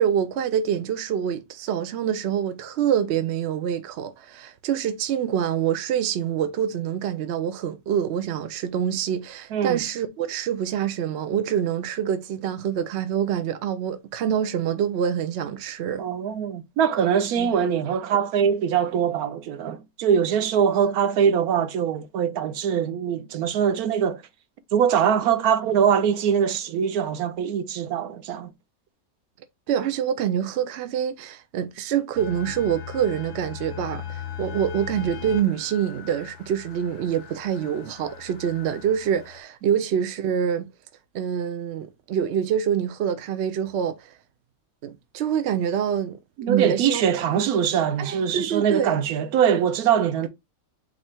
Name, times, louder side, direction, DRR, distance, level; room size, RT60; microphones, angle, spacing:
voice 1, 0.0-16.0 17.4-17.5 29.7-40.7 41.1-44.1 44.8-46.2 46.5-47.0 47.3-47.5 48.0-49.0, right 9 dB, 65° right, 0.7 m, -26 dB
voice 2, 16.0-24.2 24.7-28.5 46.4-50.3, right 8 dB, 85° right, 1.1 m, -22 dB
sound 1, 32.2-39.4, left 9 dB, 60° left, 0.9 m, -39 dB
4.1 x 2.5 x 4.4 m
omnidirectional pair, 1.5 m